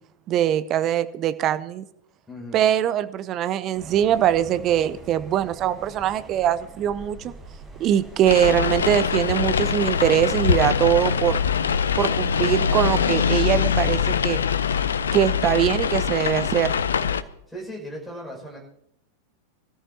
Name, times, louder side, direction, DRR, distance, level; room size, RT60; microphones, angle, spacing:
voice 1, 0.3-1.8 2.5-7.3 7.8-11.4 11.9-14.4 15.1-16.7, right 11 dB, 35° right, 13 dB, 0.7 m, -22 dB
voice 2, 2.3-2.6 13.0-13.4 17.5-18.6, equal, ahead, -4 dB, 5.8 m, -37 dB
sound 1, 3.8-13.1, right 2 dB, 15° right, 6.1 m, -45 dB
sound 2, 8.2-17.2, left 7 dB, 70° left, 0.6 m, -23 dB
24.5 x 13.5 x 2.8 m, 0.72 s
figure-of-eight pair, 90°, 0 cm